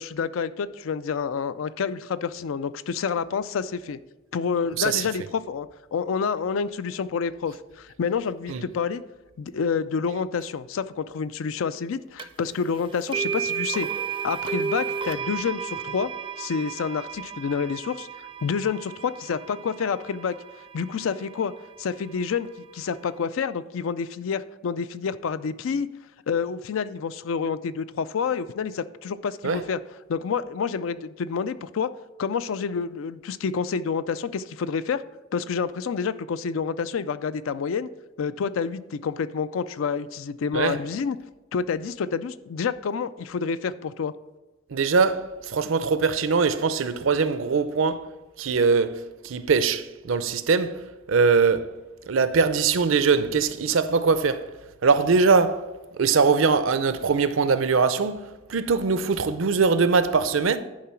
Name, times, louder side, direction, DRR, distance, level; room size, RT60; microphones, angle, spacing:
voice 1, 0.0-4.0 4.3-9.0 9.4-13.9 14.2-16.1 16.4-18.1 18.4-20.4 20.7-21.5 21.8-25.9 26.3-29.8 30.1-31.9 32.2-35.0 35.3-37.9 38.2-41.2 41.5-44.1, left 6 dB, 75° left, 0.4 m, -28 dB
sound 1, 12.2-12.3 13.1-21.2, right 7 dB, 25° right, 0.4 m, -32 dB
voice 2, 44.7-48.1 48.4-50.8 51.1-51.7 52.1-54.5 54.8-55.6 56.0-58.2 58.5-60.6, right 5 dB, 70° right, 0.6 m, -22 dB
10.5 x 4.7 x 4.4 m
head